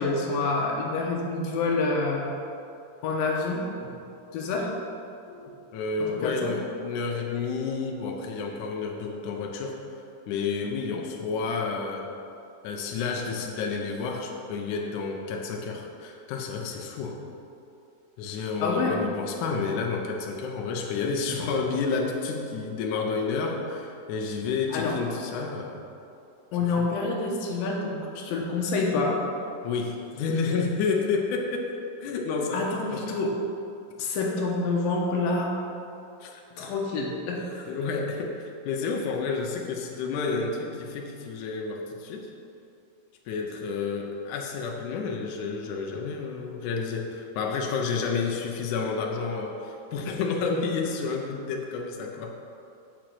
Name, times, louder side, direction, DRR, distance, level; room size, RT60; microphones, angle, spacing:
voice 1, 0.0-2.3 3.0-3.9 4.3-4.7 5.3-5.5 6.0-6.5 18.6-19.0 24.7-24.9 26.5-29.2 32.5-33.3 34.0-35.5 36.6-37.7, left 3 dB, 90° left, -1 dB, 2.8 m, -27 dB
voice 2, 5.7-10.0 10.3-12.1 12.6-17.2 18.2-25.8 26.6-26.9 29.6-31.7 32.0-33.2 36.2-36.4 37.7-42.3 43.3-52.3, left 4 dB, 75° left, 1 dB, 2.0 m, -30 dB
6.9 x 6.0 x 7.6 m, 2.6 s
omnidirectional pair, 4.0 m